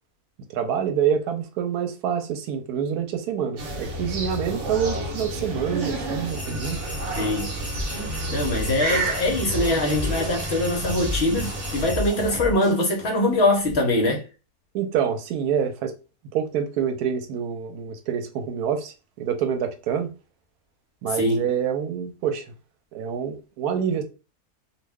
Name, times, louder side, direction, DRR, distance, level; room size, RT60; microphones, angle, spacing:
voice 1, 0.5-6.8 14.7-15.9 16.3-20.1 21.0-22.4 22.9-24.0, right 8 dB, 85° right, 1.1 m, -26 dB
sound 1, 3.6-11.9, right 1 dB, 60° right, 1.0 m, -30 dB
sound 2, 6.3-12.4, left 1 dB, 20° left, 0.4 m, -39 dB
voice 2, 7.2-7.5 8.3-14.2 21.1-21.5, left 1 dB, 55° left, 0.8 m, -23 dB
sound 3, 7.7-13.7, left 2 dB, 40° right, 0.4 m, -34 dB
2.5 x 2.1 x 3.4 m
omnidirectional pair, 1.6 m